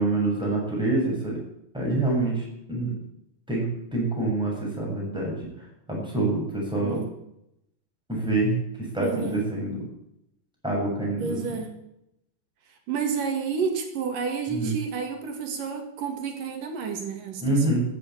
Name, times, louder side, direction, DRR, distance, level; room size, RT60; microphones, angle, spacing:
voice 1, 0.0-1.4 1.7-2.9 3.5-5.4 5.9-7.0 8.1-8.5 8.9-9.8 10.6-11.4 14.5-14.7 17.4-17.8, right 2 dB, ahead, -3 dB, 7.3 m, -26 dB
voice 2, 9.0-9.4 11.2-11.7 12.9-17.7, right 6 dB, 65° right, 4 dB, 3.7 m, -30 dB
13.5 x 11.0 x 8.7 m, 0.82 s
omnidirectional pair, 4.2 m